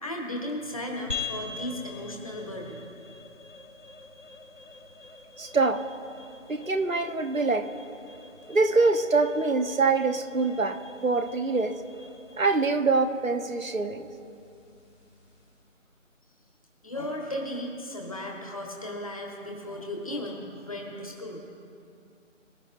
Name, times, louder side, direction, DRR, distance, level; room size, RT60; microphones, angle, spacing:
voice 1, 0.0-2.8 16.8-21.4, left 1 dB, 25° left, 1 dB, 1.4 m, -35 dB
sound 1, 1.1-15.7, left 4 dB, 70° left, 3.1 m, -44 dB
voice 2, 5.4-5.8 6.5-7.7 8.5-11.7 12.4-14.1, right 3 dB, 90° right, 7 dB, 1.1 m, -24 dB
21.5 x 11.5 x 2.6 m, 2.6 s
figure-of-eight pair, 160°, 39 cm